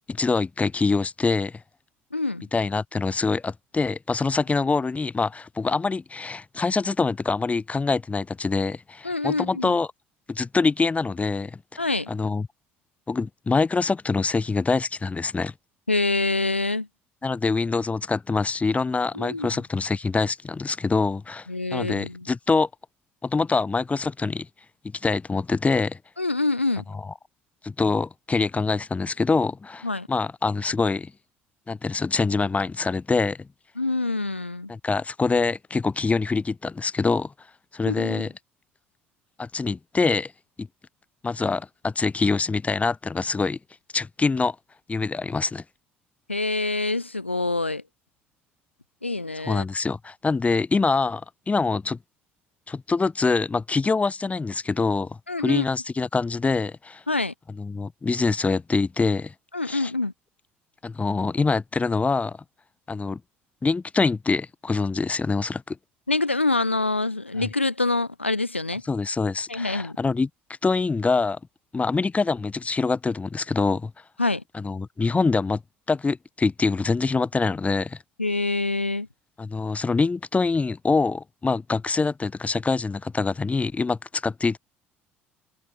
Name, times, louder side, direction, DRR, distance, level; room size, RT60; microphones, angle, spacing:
voice 1, 0.1-1.6 2.5-9.9 10.3-11.8 12.1-12.5 13.1-15.5 17.2-21.5 21.7-22.7 23.2-24.5 24.9-26.0 27.6-31.1 31.7-33.5 34.7-37.3 37.7-38.3 39.4-40.3 40.6-40.7 41.2-43.6 43.9-44.6 44.9-45.6 49.4-52.0 52.7-57.0 57.6-59.3 59.6-59.9 60.8-62.4 62.9-63.2 63.6-65.8 67.4-67.5 68.9-70.3 70.6-71.4 71.7-73.9 74.5-75.6 75.9-78.0 79.4-84.6, left 4 dB, 20° left, 2.9 m, -25 dB
voice 2, 2.1-2.5 9.0-9.7 11.8-12.1 15.9-16.9 19.1-19.6 21.5-22.2 26.2-26.8 29.8-30.1 33.8-34.7 37.9-38.3 46.3-47.8 49.0-49.6 55.3-55.6 57.1-57.3 59.5-60.1 66.1-68.8 69.5-70.0 74.2-74.4 78.2-79.1, left 2 dB, 90° left, 4.2 m, -26 dB
figure-of-eight pair, 55°, 6 cm